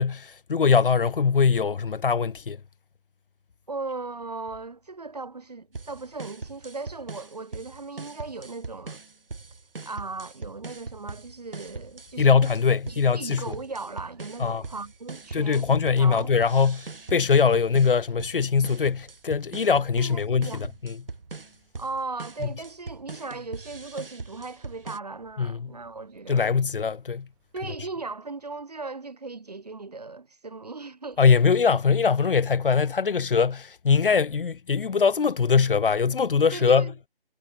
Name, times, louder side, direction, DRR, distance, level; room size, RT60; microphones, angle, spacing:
voice 1, 0.0-2.6 12.2-13.5 14.4-14.6 15.3-21.0 22.4-22.5 25.4-25.7 26.3-27.3 31.2-36.9, left 5 dB, 60° left, 0.6 m, -22 dB
voice 2, 3.7-9.0 9.8-12.4 12.9-16.3 20.0-20.6 21.8-26.4 27.5-31.2 36.5-36.9, right 3 dB, 45° right, 0.5 m, -37 dB
sound 1, 5.7-25.0, right 3 dB, 65° right, 1.8 m, -41 dB
sound 2, 10.8-27.8, right 40 dB or more, 15° right, 6.7 m, -69 dB
figure-of-eight pair, 155°, 30 cm